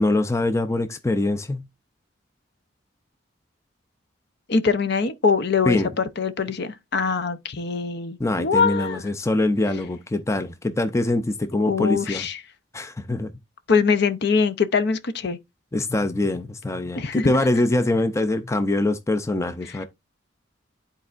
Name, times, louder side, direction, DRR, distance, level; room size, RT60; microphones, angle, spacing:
voice 1, 0.0-1.7 5.6-5.9 8.2-12.3 12.7-13.3 15.7-19.8, left 2 dB, 15° left, 0.4 m, -23 dB
voice 2, 4.5-9.0 11.7-12.4 13.7-15.4 16.9-17.3, left 5 dB, 55° left, 0.6 m, -23 dB
12.0 x 4.3 x 2.4 m
head